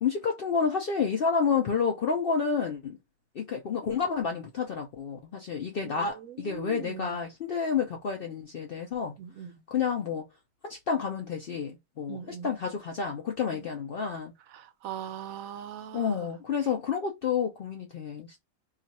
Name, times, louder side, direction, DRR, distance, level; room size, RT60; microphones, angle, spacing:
voice 1, 0.0-3.0 3.3-9.2 9.7-10.3 10.6-14.3 15.9-18.4, left 6 dB, 65° left, 0.5 m, -30 dB
voice 2, 6.2-7.2 9.2-9.6 12.1-12.5 14.5-16.3, right 9 dB, 80° right, 1.0 m, -40 dB
2.4 x 2.4 x 4.0 m
omnidirectional pair, 1.5 m